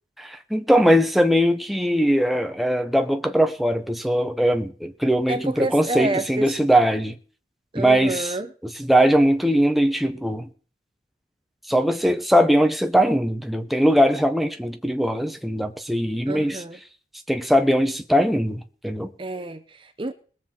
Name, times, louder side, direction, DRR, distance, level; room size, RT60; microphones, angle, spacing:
voice 1, 0.2-7.1 7.7-8.3 8.9-10.5 11.7-16.6 17.3-19.1, equal, ahead, 0.9 m, -20 dB
voice 2, 5.3-6.6 7.7-8.5 16.3-16.8 19.2-20.1, right 2 dB, 30° right, 0.8 m, -29 dB
21.0 x 7.6 x 4.4 m
head